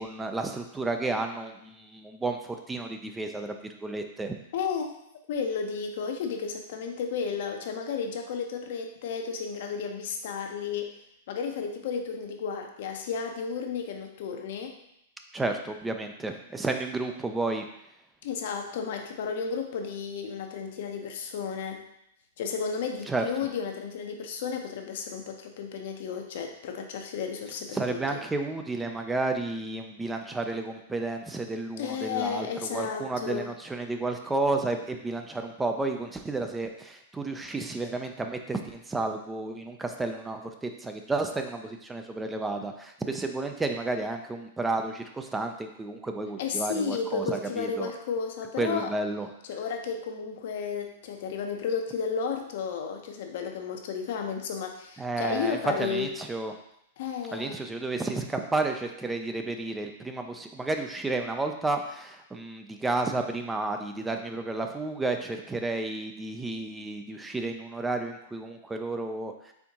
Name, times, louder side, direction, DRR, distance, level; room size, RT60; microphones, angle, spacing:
voice 1, 0.0-3.5 3.8-4.4 15.3-17.7 23.1-23.3 27.7-47.9 48.6-49.3 55.0-56.6 57.3-69.5, right 3 dB, 10° right, 5 dB, 0.4 m, -31 dB
voice 2, 4.5-4.9 5.3-11.0 11.3-14.7 18.2-21.8 22.4-28.2 31.8-33.5 46.4-48.9 49.4-56.1 57.0-57.6, left 6 dB, 65° left, 4 dB, 0.7 m, -33 dB
4.4 x 3.5 x 2.8 m, 0.77 s
hypercardioid pair, 120°, 0 cm